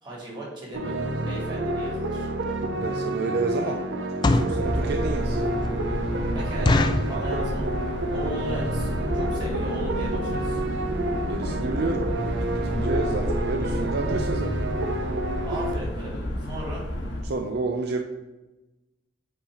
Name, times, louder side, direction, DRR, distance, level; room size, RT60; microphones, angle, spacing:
voice 1, 0.0-1.0 1.2-2.3 6.0-7.7 8.1-10.6 15.4-16.9, right 1 dB, 25° right, -5 dB, 2.3 m, -37 dB
sound 1, 0.7-15.7, right 2 dB, 90° right, 0.7 m, -29 dB
sound 2, 2.4-2.6 3.1-3.3 4.0-4.6 5.2-5.3 5.6-5.7 6.0-6.1 6.6-7.2 7.7-8.0 8.3-8.4 8.6-8.9 9.4-9.5 9.7-9.9 10.3-10.4 10.6-10.7, left 2 dB, 25° left, 0.3 m, -23 dB
voice 2, 2.8-3.8 4.2-5.4 11.3-12.3 12.6-14.5 17.2-18.0, right 3 dB, 60° right, 4 dB, 0.5 m, -29 dB
sound 3, 4.6-17.2, equal, 85° left, 1.0 m, -31 dB
8.5 x 2.8 x 4.9 m, 1.1 s
head